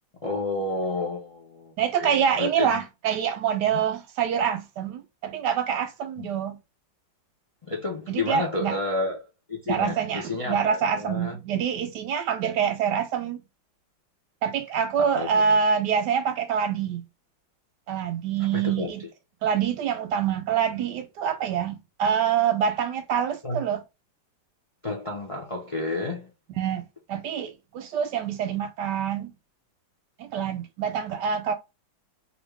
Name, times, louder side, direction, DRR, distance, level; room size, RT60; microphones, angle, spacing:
voice 1, 0.2-1.7 2.0-2.8 3.7-3.8 6.2-6.3 7.6-9.2 9.5-11.4 15.0-15.6 18.4-18.9 23.4-23.6 24.8-26.3 31.1-31.2, left 2 dB, 60° left, 0.3 m, -31 dB
voice 2, 1.8-6.6 8.1-8.8 9.7-13.4 14.4-17.0 17.9-19.0 19.4-23.8 26.6-29.3 30.2-31.5, right 7 dB, 75° right, 1.1 m, -26 dB
2.8 x 2.7 x 3.2 m
omnidirectional pair, 2.1 m